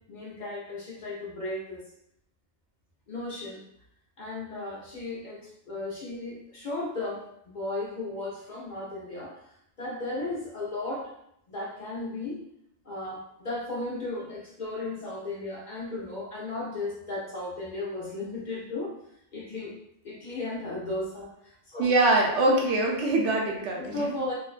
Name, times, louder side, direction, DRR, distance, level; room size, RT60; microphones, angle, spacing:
voice 1, 0.1-1.8 3.1-3.6 4.2-9.5 9.8-11.1 11.5-12.4 12.8-18.9 19.3-19.7 20.0-21.9 23.8-24.3, left 2 dB, 50° left, -6 dB, 0.6 m, -35 dB
voice 2, 21.8-24.0, right 2 dB, 80° right, -1 dB, 0.9 m, -23 dB
2.4 x 2.1 x 2.4 m, 0.75 s
omnidirectional pair, 1.2 m